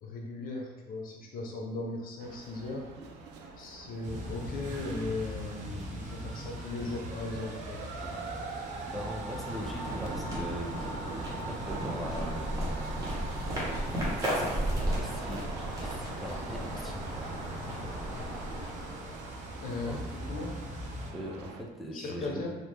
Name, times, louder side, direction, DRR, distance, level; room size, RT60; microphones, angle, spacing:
voice 1, 0.0-2.9 3.6-7.8 19.6-20.6 21.9-22.5, left 2 dB, 60° left, 0 dB, 0.7 m, -37 dB
sound 1, 2.2-21.6, right 3 dB, 85° right, 0.4 m, -43 dB
sound 2, 4.0-21.1, equal, 45° right, 0.7 m, -43 dB
voice 2, 8.0-8.3 8.9-10.9 11.3-13.3 13.5-15.5 15.8-17.3 19.8-20.0 21.1-22.5, equal, ahead, -2 dB, 0.5 m, -41 dB
sound 3, 8.9-19.6, equal, 20° right, 1.0 m, -35 dB
3.0 x 2.1 x 3.3 m, 1.1 s
cardioid pair, 110°, 17 cm